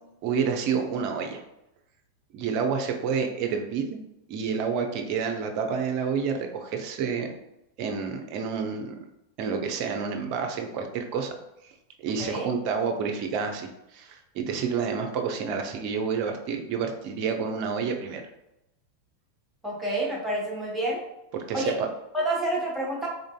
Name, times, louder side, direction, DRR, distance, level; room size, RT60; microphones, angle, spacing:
voice 1, 0.2-1.4 2.3-4.0 4.3-7.3 7.8-9.0 9.4-11.4 11.6-18.2 21.3-21.9, right 6 dB, 45° right, 4 dB, 0.5 m, -29 dB
voice 2, 19.6-21.0 21.5-21.8 22.1-23.1, right 1 dB, 5° right, -5 dB, 1.0 m, -28 dB
3.8 x 2.5 x 2.2 m, 0.88 s
figure-of-eight pair, 90°, 0 cm